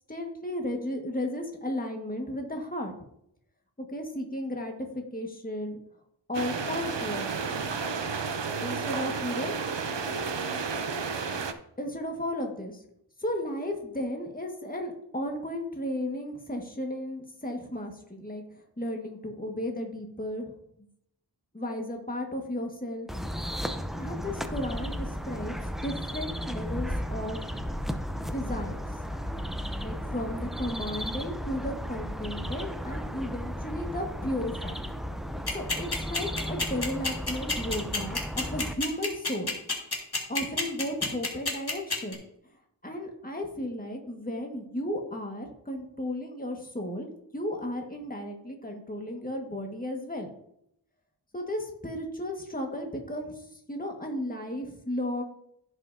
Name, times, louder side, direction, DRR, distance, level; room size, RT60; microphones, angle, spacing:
voice 1, 0.1-2.9 3.8-5.8 6.3-7.3 8.6-9.5 11.8-12.8 13.2-18.4 18.8-20.5 21.5-23.3 24.0-25.6 25.8-27.4 28.2-28.8 29.8-34.8 35.5-39.6 40.3-42.2 42.8-47.1 47.3-50.3 51.3-53.4 53.7-55.2, left 1 dB, 20° left, 2 dB, 1.6 m, -34 dB
sound 1, 6.3-11.5, right 5 dB, 75° right, 0.8 m, -32 dB
sound 2, 23.1-38.7, equal, ahead, 0.6 m, -34 dB
sound 3, 35.5-42.1, left 3 dB, 60° left, 2.0 m, -28 dB
15.5 x 5.8 x 2.7 m, 0.75 s
wide cardioid pair, 45°, 43 cm